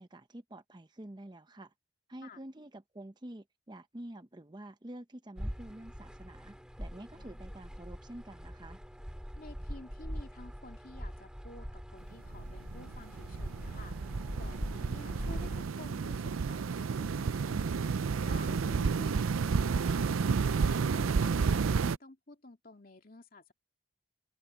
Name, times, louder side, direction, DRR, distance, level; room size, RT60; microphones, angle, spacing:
voice 1, 0.0-1.7 2.1-8.8, right 1 dB, 20° right, 0.7 m, -48 dB
sound 1, 5.4-15.6, equal, 5° right, 2.5 m, -42 dB
voice 2, 9.3-23.5, left 2 dB, 45° left, 2.6 m, -52 dB
sound 2, 12.1-22.0, right 5 dB, 90° right, 0.5 m, -31 dB
head